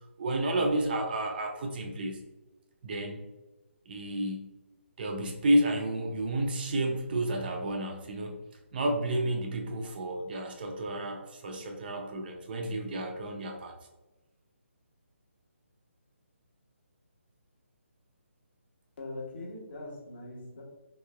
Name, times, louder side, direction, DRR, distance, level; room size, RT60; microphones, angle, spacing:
voice 1, 0.2-2.2 2.8-3.2 3.9-4.5 5.0-8.4 8.7-13.7, right 1 dB, 45° right, 3 dB, 0.6 m, -31 dB
voice 2, 19.0-20.6, left 2 dB, 50° left, -2 dB, 1.0 m, -41 dB
3.4 x 3.1 x 2.2 m, 1.1 s
figure-of-eight pair, 150°, 7 cm